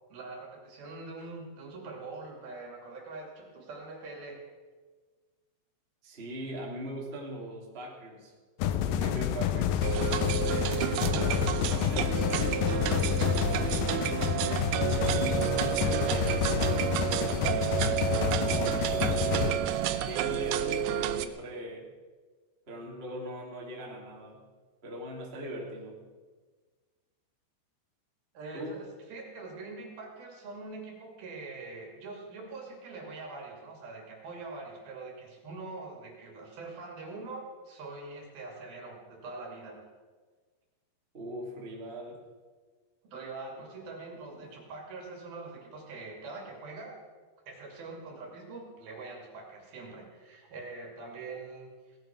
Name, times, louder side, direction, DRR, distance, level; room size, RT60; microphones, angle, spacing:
voice 1, 0.1-4.4 11.0-11.1 28.3-39.8 43.0-47.0 47.5-51.7, right 3 dB, 60° right, 0 dB, 4.2 m, -43 dB
voice 2, 6.0-8.3 8.8-9.9 10.2-14.3 15.0-17.9 18.2-21.9 22.7-24.4 24.8-26.0 28.5-28.8 41.1-42.2 44.3-44.5, equal, 15° right, -3 dB, 2.4 m, -41 dB
sound 1, 8.6-19.5, left 9 dB, 85° left, 2.0 m, -29 dB
sound 2, 9.8-21.3, right 11 dB, 80° right, 2.2 m, -30 dB
18.0 x 12.5 x 6.1 m, 1.4 s
omnidirectional pair, 5.2 m